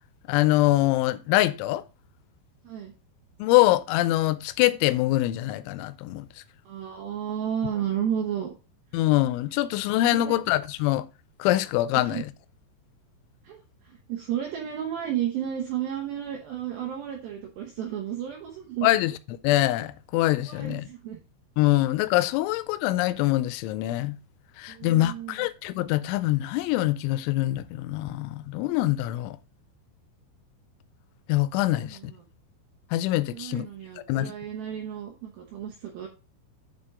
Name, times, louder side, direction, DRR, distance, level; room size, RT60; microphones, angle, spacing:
voice 1, 0.3-1.8 3.4-6.3 8.9-11.1 11.4-12.3 18.8-20.9 21.6-24.2 24.6-29.4 31.3-32.1 32.9-33.7 34.1-34.3, left 16 dB, 85° left, 2.9 m, -24 dB
voice 2, 6.7-8.5 10.1-10.4 11.9-12.2 13.4-13.6 13.8-18.9 20.5-21.2 24.7-25.5 31.8-32.2 33.3-36.1, right 9 dB, 80° right, 2.1 m, -32 dB
8.8 x 4.4 x 3.6 m
omnidirectional pair, 5.6 m